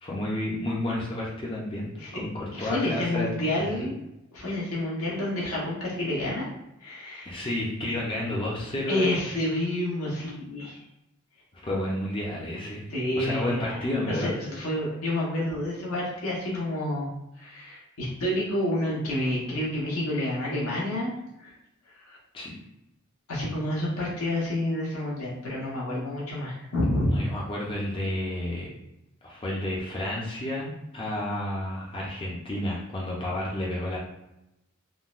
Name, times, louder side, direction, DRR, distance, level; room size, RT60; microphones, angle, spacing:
voice 1, 0.0-1.9 2.2-3.3 3.6-3.9 7.3-9.1 11.6-12.8 13.1-14.3 22.3-22.6 27.1-28.7 29.2-34.0, left 1 dB, 25° left, -4 dB, 0.5 m, -31 dB
voice 2, 2.5-4.0 4.3-6.5 6.8-7.4 8.9-10.8 12.9-17.1 17.4-21.1 21.4-21.5 22.1-22.2 23.3-27.1, left 1 dB, 80° left, -5 dB, 1.1 m, -29 dB
3.7 x 2.1 x 2.4 m, 0.88 s
head